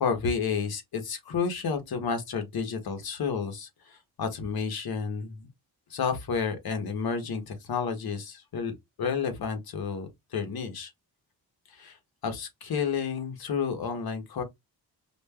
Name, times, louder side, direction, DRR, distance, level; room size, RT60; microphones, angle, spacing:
voice 1, 0.0-5.5 5.9-10.9 11.7-12.0 12.2-14.4, left 6 dB, 60° left, 0.9 m, -31 dB
5.0 x 2.3 x 2.2 m
wide cardioid pair, 155°, 41 cm